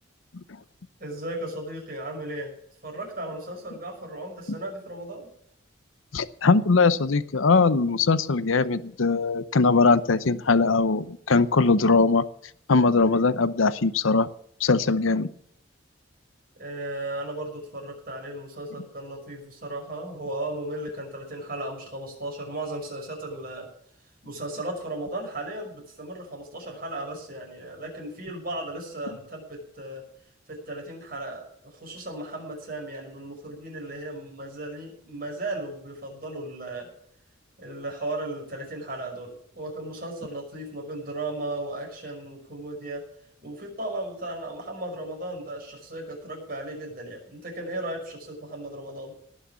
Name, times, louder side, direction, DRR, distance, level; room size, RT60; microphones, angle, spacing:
voice 1, 1.0-2.5 2.8-5.3 16.6-23.7 24.2-30.0 30.5-36.9 37.6-43.0 43.4-49.1, right 1 dB, 45° right, 1 dB, 5.8 m, -35 dB
voice 2, 6.1-12.2 12.7-14.3 14.6-15.3, left 4 dB, 80° left, 15 dB, 0.7 m, -21 dB
18.5 x 6.6 x 7.1 m, 0.68 s
head